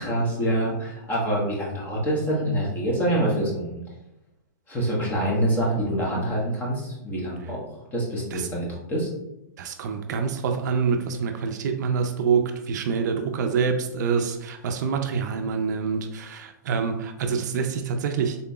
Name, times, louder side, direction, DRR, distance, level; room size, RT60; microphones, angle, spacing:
voice 1, 0.0-3.8 4.7-7.6 7.9-9.1, right 1 dB, 15° left, -3 dB, 1.1 m, -26 dB
voice 2, 9.6-18.4, right 6 dB, 60° right, 6 dB, 0.4 m, -26 dB
3.8 x 3.7 x 2.3 m, 0.90 s
hypercardioid pair, 145°, 10 cm